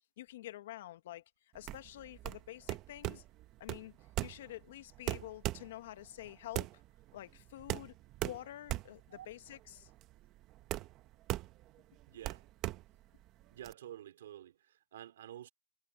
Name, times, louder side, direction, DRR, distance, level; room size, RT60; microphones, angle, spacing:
voice 1, 0.2-1.2 1.5-3.2 3.6-6.8 7.1-7.9 8.2-9.9, left 14 dB, 70° left, 1.3 m, -48 dB
sound 1, 1.6-13.7, right 17 dB, 35° right, 1.0 m, -40 dB
voice 2, 12.1-12.5 13.5-15.5, right 11 dB, 80° right, 2.8 m, -50 dB
hypercardioid pair, 135°, 0 cm